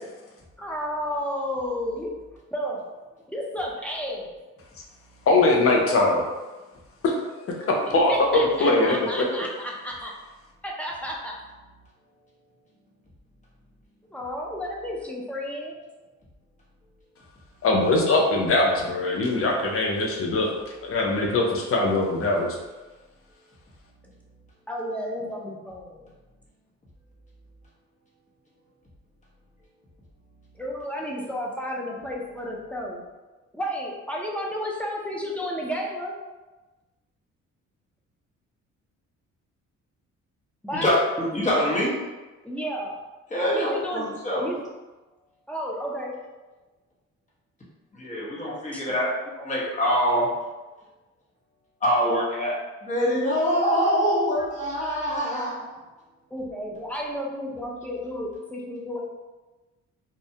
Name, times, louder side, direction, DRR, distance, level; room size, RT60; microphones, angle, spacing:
voice 1, 0.6-2.1 2.5-2.8 3.3-4.3 7.8-10.1 10.6-11.3 14.1-15.8 24.7-26.1 30.6-33.0 33.5-36.2 40.6-40.9 42.4-42.9 43.5-44.1 44.4-44.6 45.5-46.2 48.7-48.8 56.3-59.0, equal, 5° left, -2 dB, 0.5 m, -32 dB
voice 2, 5.3-6.3 7.9-9.0 17.6-20.5 20.8-22.5, left 2 dB, 50° left, 0 dB, 0.6 m, -21 dB
voice 3, 40.7-42.0 43.3-44.5 47.9-49.1 49.4-50.4 51.8-55.7, equal, 25° left, -6 dB, 0.9 m, -24 dB
2.3 x 2.1 x 2.7 m, 1.2 s
cardioid pair, 90°, 30 cm